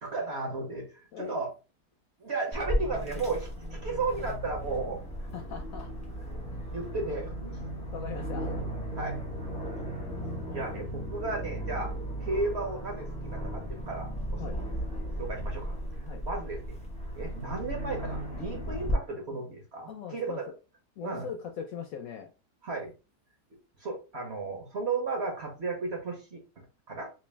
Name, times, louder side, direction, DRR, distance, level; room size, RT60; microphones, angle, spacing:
voice 1, 0.0-1.5 2.2-5.0 6.7-7.7 8.9-9.2 10.5-11.9 12.2-14.4 15.2-15.7 16.2-16.8 17.1-20.5 21.0-21.3 22.6-22.9 23.8-27.1, right 3 dB, 50° right, 1 dB, 0.9 m, -34 dB
Aircraft, 2.5-18.9, equal, 5° left, 0.6 m, -36 dB
voice 2, 5.3-5.9 7.9-8.6 14.4-14.6 16.0-16.2 19.9-20.4 21.0-22.3, left 7 dB, 70° left, 4 dB, 0.8 m, -40 dB
3.2 x 2.6 x 3.2 m, 0.32 s
omnidirectional pair, 1.8 m